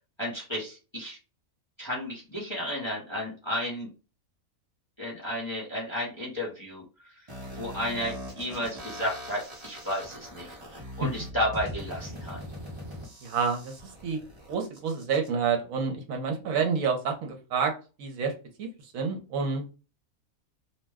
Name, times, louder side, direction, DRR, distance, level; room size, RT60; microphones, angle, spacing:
voice 1, 0.2-1.2 1.8-3.9 5.0-6.8 7.5-12.4, equal, 25° left, -4 dB, 0.7 m, -33 dB
sound 1, 7.3-15.3, equal, 30° right, 0.5 m, -41 dB
voice 2, 13.2-13.7 14.0-14.2 14.5-17.7 18.0-18.3 18.6-18.7 18.9-19.7, right 5 dB, 70° right, 3 dB, 1.1 m, -28 dB
2.6 x 2.1 x 3.4 m, 0.32 s
omnidirectional pair, 1.5 m